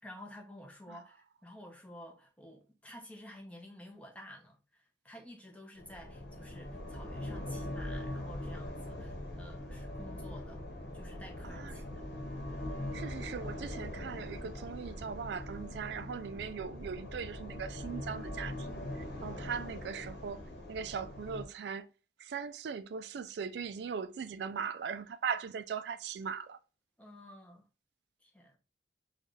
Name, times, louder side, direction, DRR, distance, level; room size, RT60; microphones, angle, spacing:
voice 1, 0.0-10.6 10.9-12.0 12.5-12.7 19.2-19.5 27.0-27.7 28.2-28.6, left 1 dB, 5° left, 0.7 m, -51 dB
sound 1, 5.8-21.5, left 1 dB, 70° left, 1.1 m, -42 dB
voice 2, 11.4-11.8 12.9-18.8 19.2-21.9 22.2-26.6, right 6 dB, 70° right, 0.3 m, -39 dB
4.4 x 2.4 x 3.1 m
head